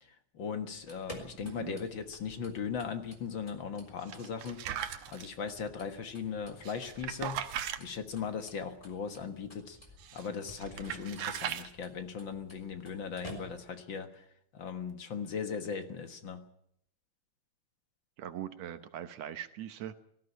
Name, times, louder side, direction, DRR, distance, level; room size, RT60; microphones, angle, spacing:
voice 1, 0.0-4.6 5.1-7.4 7.8-9.8 10.1-14.2 14.5-16.4, left 6 dB, 50° left, 8 dB, 1.8 m, -38 dB
sound 1, 0.7-13.9, equal, 10° left, 3.7 m, -54 dB
voice 2, 1.4-1.8 18.2-20.0, right 11 dB, 70° right, 11 dB, 2.1 m, -41 dB
sound 2, 4.1-5.3 6.6-7.8 10.0-10.3 10.6-11.7, right 10 dB, 85° right, 2.5 m, -38 dB
19.0 x 14.5 x 9.9 m, 0.72 s
omnidirectional pair, 3.3 m